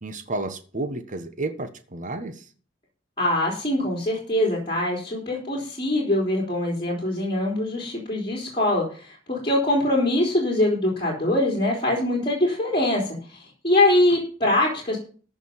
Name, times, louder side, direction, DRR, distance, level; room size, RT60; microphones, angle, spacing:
voice 1, 0.0-2.5, right 2 dB, 40° right, 9 dB, 1.3 m, -31 dB
voice 2, 3.2-15.0, left 1 dB, 30° left, -3 dB, 3.9 m, -23 dB
14.5 x 5.4 x 7.4 m, 0.40 s
head